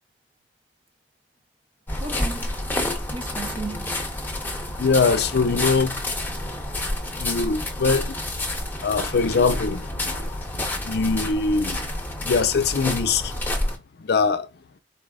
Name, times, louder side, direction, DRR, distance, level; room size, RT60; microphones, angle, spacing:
sound 1, 1.9-13.8, left 1 dB, 10° left, 0.7 m, -29 dB
voice 1, 1.9-4.2, right 2 dB, 30° right, 0.5 m, -36 dB
voice 2, 4.8-6.0 7.2-8.2 8.8-10.3 10.8-11.9 12.2-13.3 14.0-14.5, left 4 dB, 55° left, 0.5 m, -22 dB
4.3 x 3.3 x 2.3 m
head